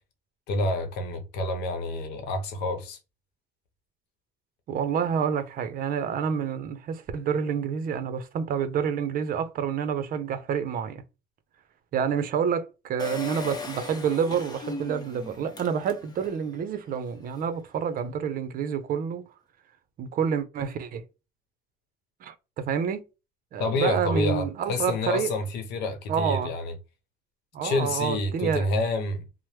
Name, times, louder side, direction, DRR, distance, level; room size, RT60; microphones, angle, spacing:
voice 1, 0.5-3.0 23.6-26.7 27.6-29.2, left 2 dB, 85° left, 0.8 m, -28 dB
voice 2, 4.7-11.0 11.9-19.3 20.0-21.0 22.2-23.0 23.5-25.3 26.1-26.5 27.5-28.7, right 7 dB, 60° right, 0.6 m, -28 dB
Engine, 13.0-16.5 16.9-17.0 17.2-17.3, left 3 dB, 25° left, 0.7 m, -38 dB
2.9 x 2.0 x 3.1 m
cardioid pair, 110°, 17 cm